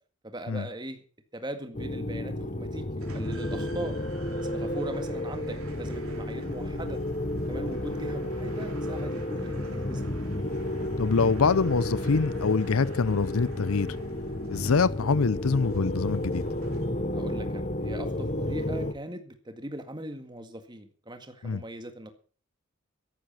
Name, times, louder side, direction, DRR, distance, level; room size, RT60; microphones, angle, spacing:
voice 1, 0.2-1.0 1.3-2.9 3.1-3.9 4.4-7.0 7.5-10.1 14.5-14.8 17.1-22.1, right 1 dB, 20° right, 1.9 m, -40 dB
sound 1, 1.7-18.9, left 1 dB, 35° left, 1.1 m, -32 dB
sound 2, 3.0-17.3, right 3 dB, 75° right, 3.8 m, -50 dB
voice 2, 11.0-13.9 14.5-16.4 21.4-21.6, left 4 dB, 75° left, 0.6 m, -24 dB
14.0 x 11.5 x 5.6 m
head